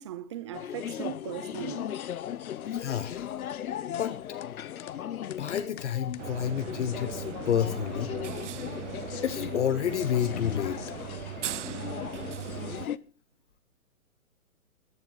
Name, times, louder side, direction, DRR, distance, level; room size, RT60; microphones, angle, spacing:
voice 1, 0.0-1.9, right 11 dB, 20° right, 0.7 m, -38 dB
sound 1, 0.5-13.0, left 10 dB, 75° left, 0.8 m, -37 dB
voice 2, 2.7-3.3 3.9-4.1 5.2-8.1 9.2-10.8, left 9 dB, 55° left, 1.0 m, -30 dB
sound 2, 6.2-12.9, right 11 dB, 55° right, 0.6 m, -39 dB
21.0 x 7.7 x 3.9 m
hypercardioid pair, 160°, 43 cm